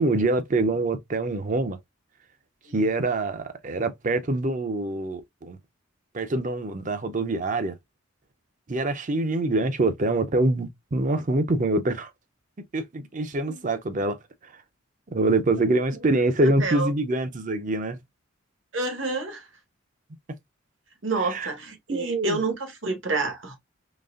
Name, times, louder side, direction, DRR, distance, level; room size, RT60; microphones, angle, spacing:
voice 1, 0.0-1.8 2.7-5.6 6.1-7.8 8.7-12.1 12.7-14.2 14.4-14.5 15.1-18.0 21.2-21.5 21.9-22.4, right 2 dB, 40° right, 0.6 m, -25 dB
voice 2, 16.4-16.9 18.7-19.5 21.0-23.6, right 3 dB, 65° right, 1.2 m, -28 dB
4.0 x 3.1 x 2.4 m
head